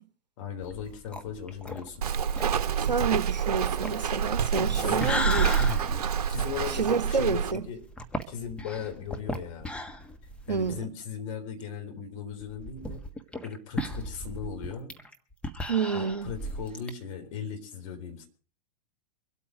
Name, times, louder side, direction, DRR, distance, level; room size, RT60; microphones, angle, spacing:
voice 1, 0.4-2.0 2.4-2.5 4.5-5.2 5.6-5.8 6.3-7.8 8.3-9.7 10.5-13.0 13.4-14.9 15.9-18.3, left 6 dB, 50° left, 3.9 m, -37 dB
sound 1, 0.6-10.8 11.2-11.3 11.6-11.7 12.4-16.9, left 1 dB, 5° left, 1.5 m, -36 dB
Walk footsteps, 2.0-7.5, right 8 dB, 60° right, 1.0 m, -27 dB
voice 2, 2.8-5.6 6.7-7.6 10.5-10.9 15.7-16.3, right 5 dB, 85° right, 0.8 m, -29 dB
24.5 x 8.6 x 5.1 m
figure-of-eight pair, 100°, 21 cm